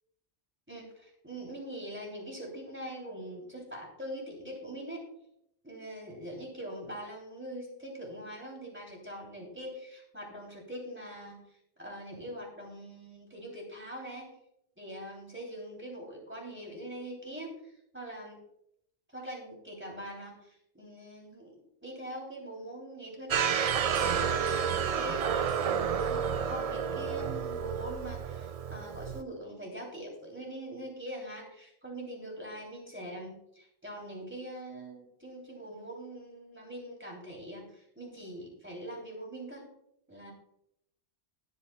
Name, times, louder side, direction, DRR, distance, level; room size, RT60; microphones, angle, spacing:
voice 1, 0.7-5.1 5.6-14.3 14.8-18.4 19.1-39.6 40.1-40.3, right 1 dB, 10° right, -1 dB, 3.2 m, -43 dB
sound 1, 23.3-29.2, right 7 dB, 65° right, 0.3 m, -30 dB
19.5 x 8.6 x 2.3 m, 0.75 s
omnidirectional pair, 1.1 m